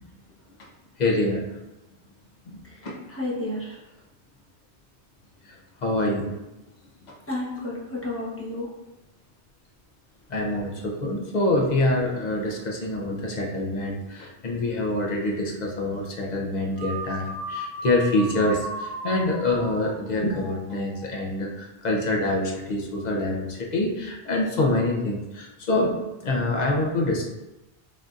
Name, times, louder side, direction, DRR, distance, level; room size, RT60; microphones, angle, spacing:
voice 1, 1.0-1.6 2.5-3.0 5.4-6.4 7.1-7.2 10.3-25.9 26.2-27.2, left 2 dB, 45° left, 0 dB, 0.7 m, -26 dB
voice 2, 2.6-3.8 7.3-8.7, left 2 dB, 15° left, -5 dB, 0.7 m, -32 dB
sound 1, 16.8-21.3, right 2 dB, 65° right, 0.8 m, -36 dB
5.6 x 2.6 x 2.4 m, 0.99 s
omnidirectional pair, 1.1 m